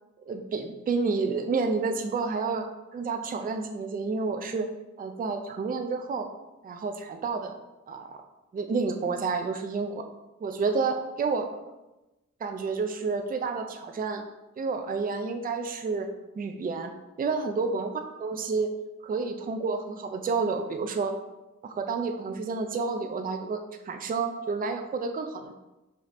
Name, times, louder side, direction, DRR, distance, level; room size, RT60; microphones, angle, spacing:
voice 1, 0.3-4.7 5.0-6.3 6.6-7.6 7.9-8.2 8.5-10.1 10.4-11.6 12.4-14.2 14.6-16.1 16.4-16.9 17.2-17.9 18.2-18.7 19.0-21.2 21.6-25.5, right 4 dB, 30° right, 6 dB, 0.4 m, -30 dB
5.1 x 2.7 x 2.5 m, 1.0 s
cardioid pair, 60°, 30 cm